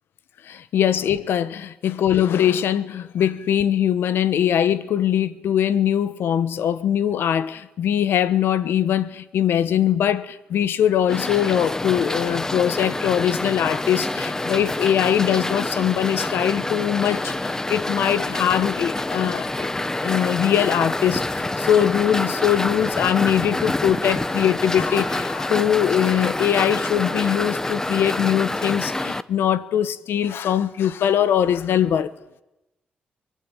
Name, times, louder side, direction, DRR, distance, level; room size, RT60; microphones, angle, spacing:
voice 1, 0.4-19.7 20.0-32.1, left 9 dB, 80° left, 1.1 m, -22 dB
sound 1, 11.1-29.2, left 2 dB, 15° left, 0.9 m, -27 dB
24.5 x 20.5 x 9.0 m
cardioid pair, 95°, 4 cm